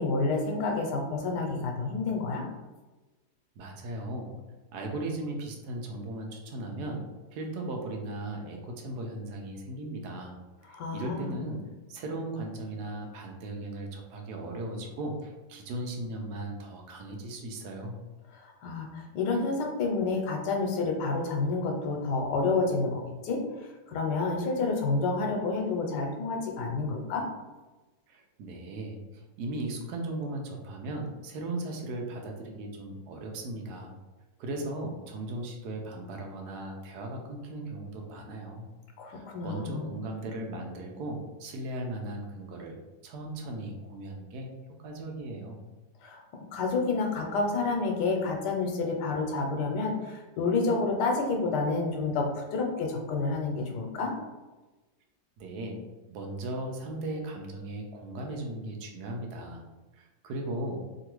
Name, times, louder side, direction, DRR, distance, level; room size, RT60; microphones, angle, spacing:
voice 1, 0.0-2.4 10.7-11.4 18.3-27.2 39.0-39.9 46.0-46.2 46.5-52.3 52.5-54.1, left 3 dB, 90° left, 2 dB, 1.2 m, -29 dB
voice 2, 3.6-4.3 4.7-7.0 7.3-10.3 10.6-11.6 11.9-18.0 28.1-33.9 34.4-38.6 39.1-42.7 43.0-44.5 44.8-45.6 55.4-55.8 56.1-59.6 59.9-60.8, right 2 dB, 80° right, 2 dB, 1.1 m, -37 dB
3.0 x 2.4 x 3.0 m, 1.2 s
omnidirectional pair, 1.7 m